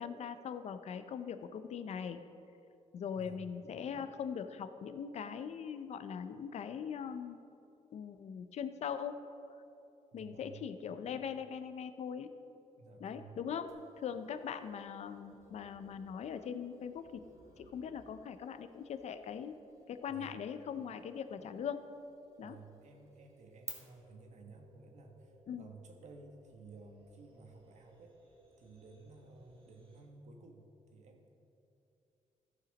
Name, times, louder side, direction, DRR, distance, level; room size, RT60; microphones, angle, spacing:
voice 1, 0.0-2.2 2.9-7.4 7.9-9.2 10.1-12.3 13.0-17.2 17.6-19.6 19.9-21.8 22.4-22.6 25.5-25.7, left 7 dB, 60° left, 10 dB, 0.5 m, -41 dB
voice 2, 10.1-10.7 12.8-13.4 20.1-20.4 21.4-21.5 22.4-28.2 28.6-31.4, right 3 dB, 65° right, 4 dB, 1.2 m, -55 dB
sound 1, 13.7-23.7, right 4 dB, 25° right, 1.4 m, -58 dB
sound 2, 14.2-30.0, right 2 dB, 45° right, 2.4 m, -65 dB
14.0 x 5.8 x 5.2 m, 2.7 s
wide cardioid pair, 155°, 13 cm